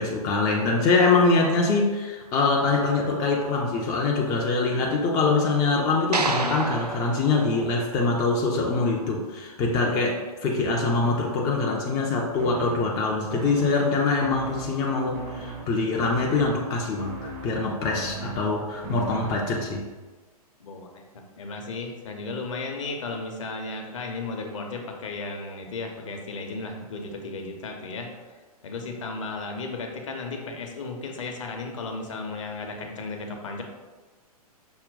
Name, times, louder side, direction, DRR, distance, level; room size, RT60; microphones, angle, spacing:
voice 1, 0.0-19.9, left 3 dB, 15° left, -1 dB, 0.4 m, -24 dB
sound 1, 6.1-8.5, right 3 dB, 80° right, 0.5 m, -30 dB
sound 2, 12.4-19.8, right 2 dB, 30° right, 0.6 m, -39 dB
voice 2, 17.7-18.1 20.6-20.9 21.1-28.3 28.6-33.6, left 3 dB, 55° left, 3 dB, 0.7 m, -35 dB
5.9 x 2.2 x 3.8 m, 1.3 s
figure-of-eight pair, 110°, 20 cm